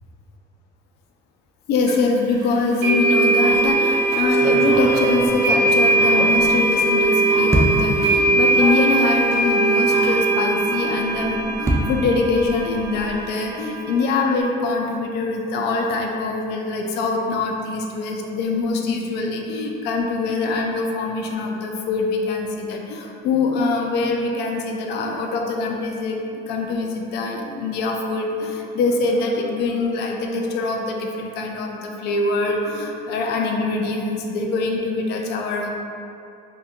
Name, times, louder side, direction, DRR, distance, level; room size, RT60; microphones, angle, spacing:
voice 1, 1.7-26.2 26.5-35.7, left 3 dB, 80° left, 1 dB, 0.4 m, -23 dB
sound 1, 1.9-2.0 2.8-14.4, right 2 dB, 85° right, 1.0 m, -20 dB
sound 2, 3.4-3.8 4.3-7.0 7.5-8.1 8.8-8.9 9.2-9.3 11.0-13.3, right 1 dB, 15° right, 0.4 m, -26 dB
2.6 x 2.2 x 3.5 m, 2.6 s
cardioid pair, 110°, 17 cm